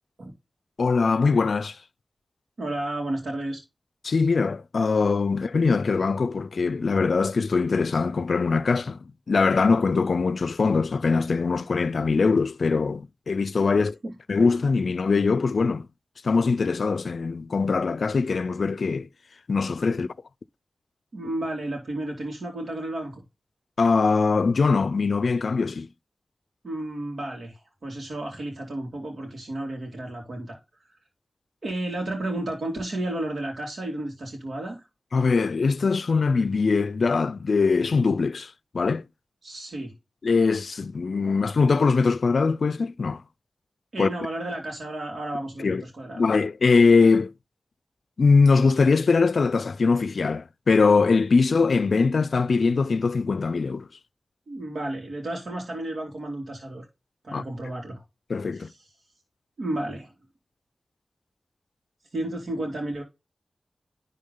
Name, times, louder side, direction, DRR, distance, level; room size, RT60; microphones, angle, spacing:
voice 1, 0.8-1.8 4.0-14.0 14.3-15.9 16.2-19.1 19.5-20.1 23.8-25.9 35.1-39.0 40.2-43.2 44.0-44.1 45.6-45.8 46.2-47.3 48.2-53.9 57.3-57.4 58.3-58.7, left 4 dB, 75° left, 0.4 m, -22 dB
voice 2, 2.6-3.6 13.7-14.1 19.9-20.0 21.1-23.2 26.6-31.0 31.6-34.9 39.4-40.0 43.9-46.3 54.5-56.9 57.2-58.0 58.5-58.9 59.6-60.1 62.1-63.0, right 1 dB, 75° right, 2.4 m, -32 dB
10.5 x 3.6 x 3.8 m
wide cardioid pair, 80°, 0 cm